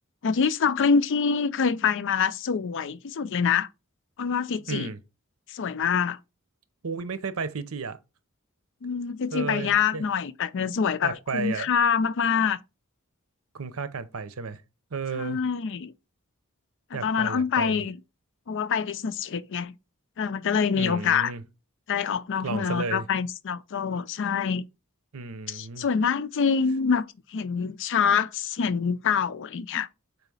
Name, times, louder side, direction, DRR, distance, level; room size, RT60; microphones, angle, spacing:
voice 1, 0.2-3.7 4.2-4.9 5.5-6.2 8.8-12.6 15.1-15.9 17.0-18.0 18.5-19.7 20.2-21.3 21.9-24.7 25.5-29.9, left 6 dB, 60° left, 0.5 m, -25 dB
voice 2, 4.7-5.0 6.8-8.0 9.3-10.0 11.0-11.7 13.5-14.6 14.9-15.4 16.9-17.8 20.8-21.4 22.4-23.0 25.1-25.8, right 4 dB, 70° right, 0.8 m, -33 dB
4.7 x 4.0 x 5.4 m
head